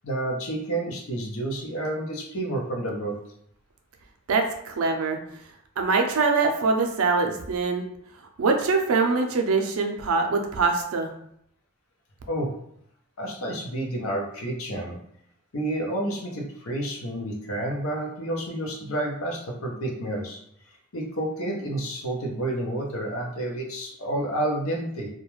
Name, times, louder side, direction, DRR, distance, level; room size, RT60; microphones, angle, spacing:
voice 1, 0.0-3.1 12.3-12.5 13.2-15.0 15.5-20.4 20.9-25.1, right 1 dB, 75° left, 0 dB, 0.7 m, -30 dB
voice 2, 4.3-5.2 5.8-7.9 8.4-11.1, right 4 dB, 75° right, 4 dB, 0.4 m, -23 dB
2.3 x 2.1 x 3.0 m, 0.70 s
head